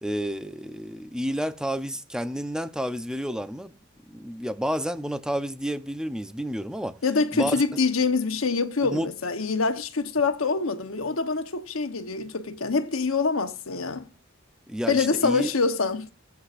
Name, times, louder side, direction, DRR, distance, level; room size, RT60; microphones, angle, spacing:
voice 1, 0.0-3.7 4.1-7.0 7.3-7.5 8.9-9.1 14.7-15.5, equal, 5° right, 0.7 m, -30 dB
voice 2, 7.0-14.1 14.9-16.1, left 4 dB, 75° left, 1.0 m, -25 dB
17.5 x 8.1 x 2.5 m
head